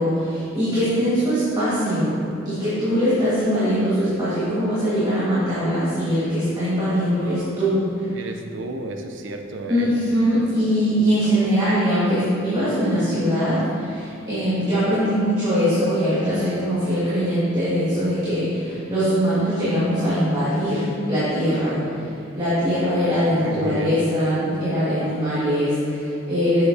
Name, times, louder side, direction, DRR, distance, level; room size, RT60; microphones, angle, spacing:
voice 1, 0.0-2.2 2.4-7.8 9.7-21.8 22.3-26.6, equal, 20° right, -12 dB, 1.5 m, -22 dB
voice 2, 8.1-9.9 23.3-24.0, right 2 dB, 65° right, 5 dB, 0.6 m, -32 dB
7.3 x 6.6 x 2.7 m, 2.6 s
head